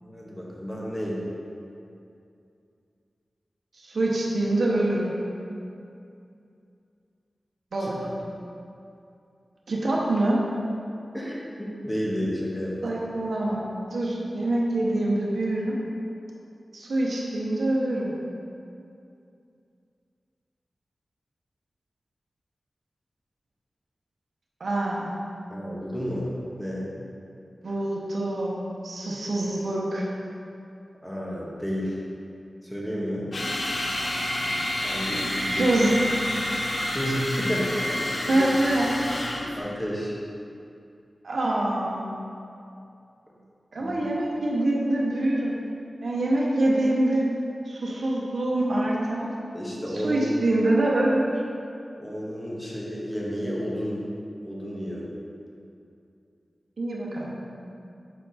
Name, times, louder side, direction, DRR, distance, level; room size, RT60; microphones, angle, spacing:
voice 1, 0.0-1.4 7.8-7.9 11.1-12.8 25.5-26.3 26.6-26.9 31.0-32.0 32.6-33.3 34.8-35.7 36.9-37.8 38.2-38.5 39.5-40.2 43.8-44.0 49.5-50.2 52.0-54.0 54.4-55.1, equal, 15° left, -5 dB, 1.5 m, -31 dB
voice 2, 3.8-5.1 7.7-8.0 9.7-10.4 12.8-13.6 13.9-15.8 16.7-18.2 24.6-25.1 27.6-30.1 35.5-35.9 38.3-39.0 41.2-42.2 43.7-45.6 46.0-47.3 47.7-49.3 49.9-51.3 56.8-57.4, right 1 dB, 80° right, -4 dB, 0.9 m, -25 dB
sound 1, 33.3-39.6, left 1 dB, 60° left, 0.8 m, -29 dB
6.2 x 4.5 x 4.2 m, 2.6 s
wide cardioid pair, 60°, 0 cm